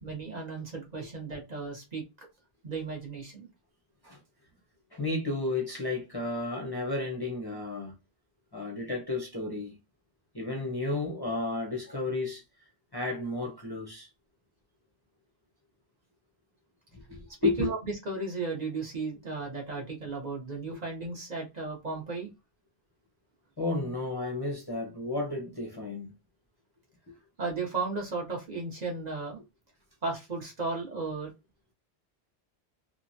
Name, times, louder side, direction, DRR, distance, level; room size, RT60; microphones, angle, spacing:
voice 1, 0.0-2.3 2.6-3.5 17.4-22.3 27.4-29.4 30.0-31.3, right 3 dB, 45° right, 0.9 m, -35 dB
voice 2, 4.9-7.9 8.5-9.8 10.3-12.4 12.9-14.1 16.9-17.7 23.6-26.1, left 2 dB, 25° left, 0.6 m, -32 dB
3.1 x 2.1 x 2.6 m
omnidirectional pair, 1.1 m